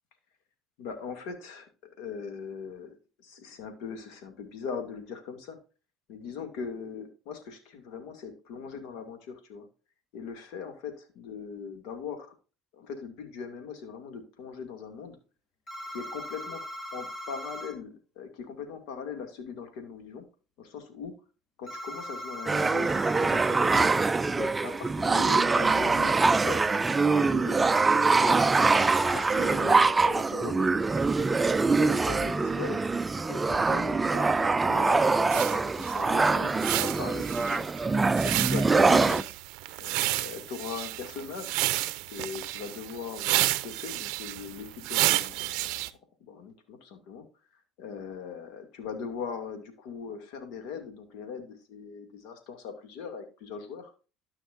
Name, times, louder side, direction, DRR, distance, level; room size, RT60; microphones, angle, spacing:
voice 1, 0.8-5.6 6.1-9.7 10.1-12.3 12.7-15.2 15.9-16.6 16.9-20.3 20.6-21.1 21.6-23.9 24.4-26.7 27.0-28.5 29.1-31.1 31.8-32.9 33.2-37.7 38.2-39.3 39.8-41.6 42.1-45.8 46.3-47.2 47.8-53.9, left 6 dB, 70° left, 7 dB, 2.3 m, -40 dB
sound 1, 15.7-17.7 21.7-23.7 27.7-29.6, equal, 35° left, 4.1 m, -39 dB
sound 2, 22.5-39.2, right 3 dB, 20° right, 0.3 m, -24 dB
sound 3, 35.3-45.9, right 18 dB, 70° right, 0.5 m, -31 dB
13.0 x 5.8 x 2.6 m, 0.33 s
hypercardioid pair, 75°, 0 cm